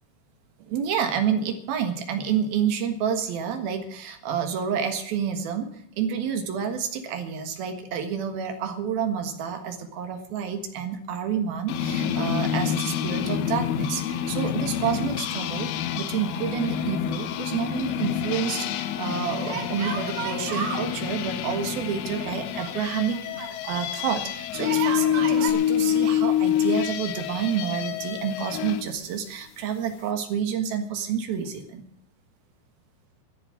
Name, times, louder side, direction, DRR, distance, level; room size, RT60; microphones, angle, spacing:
voice 1, 0.7-24.2 24.5-31.8, right 7 dB, 65° right, 7 dB, 2.7 m, -29 dB
sound 1, 11.7-28.8, left 10 dB, 85° left, 2.2 m, -27 dB
Yell, 16.2-17.1 17.3-17.4 19.5-20.9 22.2-23.6 24.5-25.5, right 6 dB, 85° right, 5.6 m, -33 dB
14.0 x 10.0 x 9.0 m, 0.67 s
omnidirectional pair, 5.9 m